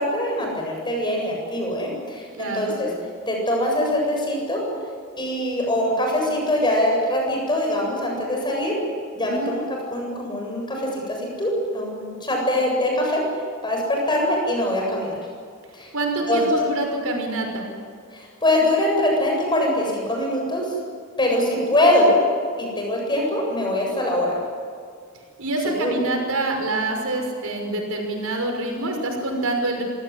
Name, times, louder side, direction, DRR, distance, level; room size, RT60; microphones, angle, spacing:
voice 1, 0.0-2.9 3.3-4.6 5.2-8.8 9.1-9.6 9.9-13.2 13.6-15.2 15.7-15.9 16.3-16.4 18.1-20.7 21.2-22.2 22.6-24.3 25.6-25.9, left 1 dB, 20° left, 0 dB, 7.8 m, -23 dB
voice 2, 2.3-2.8 9.2-9.5 15.9-17.7 21.3-21.6 25.4-29.8, right 2 dB, 75° right, 3 dB, 5.9 m, -26 dB
27.0 x 17.5 x 9.8 m, 2.1 s
head